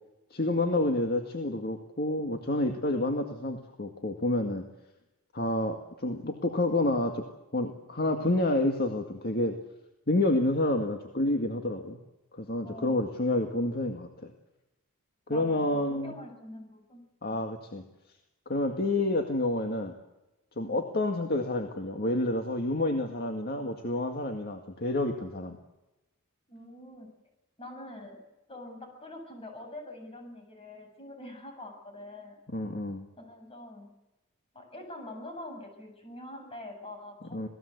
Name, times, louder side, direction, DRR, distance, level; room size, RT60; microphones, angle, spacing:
voice 1, 0.3-4.6 5.3-7.2 7.5-9.6 10.1-12.0 12.3-14.3 15.3-16.2 17.2-17.8 18.5-19.9 20.6-25.6 32.5-33.0 37.3-37.5, left 1 dB, 45° left, 4 dB, 2.0 m, -29 dB
voice 2, 12.6-13.0 15.3-17.4 20.6-20.8 26.5-27.1 27.6-28.2 28.5-32.4 33.1-33.9 34.5-37.4, left 1 dB, 25° left, 4 dB, 7.9 m, -45 dB
27.5 x 19.0 x 8.1 m, 0.98 s
head